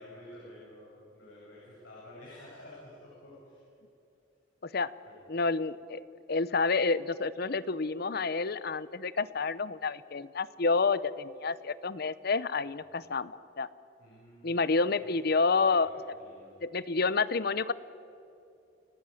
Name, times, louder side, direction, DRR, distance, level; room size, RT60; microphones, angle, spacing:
voice 1, 0.0-3.6 5.0-5.2 14.0-14.7 15.0-16.6, left 1 dB, 80° left, -6 dB, 7.9 m, -51 dB
voice 2, 5.3-6.0 6.3-13.7 14.4-15.9 16.6-17.7, left 4 dB, 55° left, 17 dB, 0.7 m, -29 dB
29.5 x 15.5 x 9.1 m, 2.6 s
head